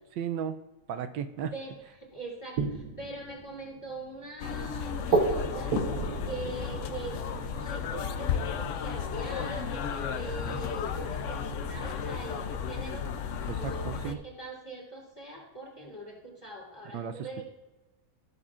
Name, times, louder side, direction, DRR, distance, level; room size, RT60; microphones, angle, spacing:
voice 1, 0.2-0.6 0.9-1.5 10.5-10.6 13.5-14.2 16.9-17.4, right 8 dB, 85° right, 9 dB, 1.3 m, -35 dB
sound 1, 1.4-2.0 2.6-9.0 9.4-10.9 12.2-12.3 12.8-13.5, right 3 dB, 65° right, 1.5 m, -34 dB
voice 2, 2.0-5.8 6.2-13.1 13.5-17.4, right 2 dB, 15° left, -4 dB, 3.2 m, -42 dB
sound 2, 4.4-14.1, left 6 dB, 70° left, 0.7 m, -34 dB
15.5 x 7.0 x 2.5 m, 1.1 s
omnidirectional pair, 1.9 m